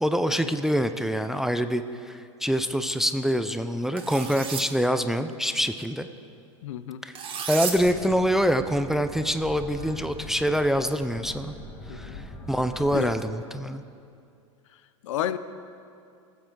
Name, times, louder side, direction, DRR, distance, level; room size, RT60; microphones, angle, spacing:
voice 1, 0.0-6.1 7.0-7.1 7.5-11.5 11.9-13.8, equal, ahead, 10 dB, 0.3 m, -25 dB
sound 1, 4.0-4.6 7.2-7.8, right 7 dB, 35° right, 1.3 m, -32 dB
voice 2, 6.6-7.0 11.9-12.3 12.9-13.1 15.0-15.4, left 11 dB, 75° left, 14 dB, 0.5 m, -31 dB
sound 2, 7.7-13.1, left 2 dB, 15° left, 1.4 m, -42 dB
16.0 x 7.4 x 3.9 m, 2.5 s
hypercardioid pair, 100°, 16 cm